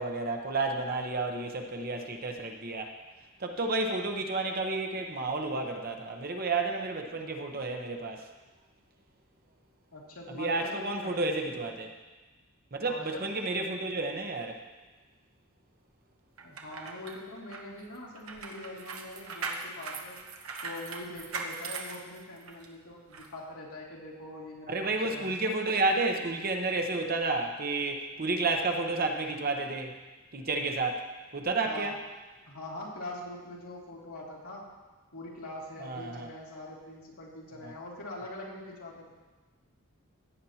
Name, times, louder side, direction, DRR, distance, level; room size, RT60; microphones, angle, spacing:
voice 1, 0.0-2.9 3.4-8.3 10.3-11.9 12.7-14.6 24.7-30.0 30.3-31.1 31.3-31.9 35.8-36.3 37.6-37.7, right 3 dB, 45° right, 3 dB, 1.0 m, -31 dB
voice 2, 9.9-11.8 12.8-13.3 16.4-20.2 20.6-25.4 31.6-31.9 32.5-34.6 35.1-39.1, left 1 dB, 85° left, -4 dB, 2.7 m, -43 dB
sound 1, 16.4-22.7 23.1-23.3, right 4 dB, 75° right, 1.1 m, -40 dB
16.5 x 9.4 x 2.9 m, 1.2 s
head